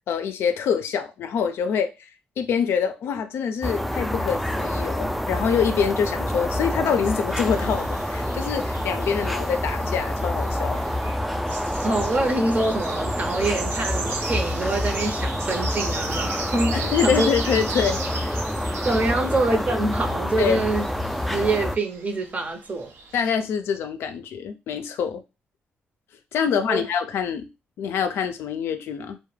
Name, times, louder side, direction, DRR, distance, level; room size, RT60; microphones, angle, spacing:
voice 1, 0.1-2.1 2.4-10.8 16.7-18.3 20.4-20.6 23.1-25.2 26.3-27.5 27.8-29.2, left 7 dB, 80° left, 0.4 m, -25 dB
sound 1, 3.6-21.8, left 1 dB, ahead, 0.3 m, -27 dB
sound 2, 7.3-23.3, right 4 dB, 75° right, 0.5 m, -37 dB
voice 2, 11.8-17.3 18.8-20.9 21.3-22.9 26.7-26.8, right 2 dB, 40° right, 0.7 m, -25 dB
2.2 x 2.1 x 3.2 m
cardioid pair, 70°, 4 cm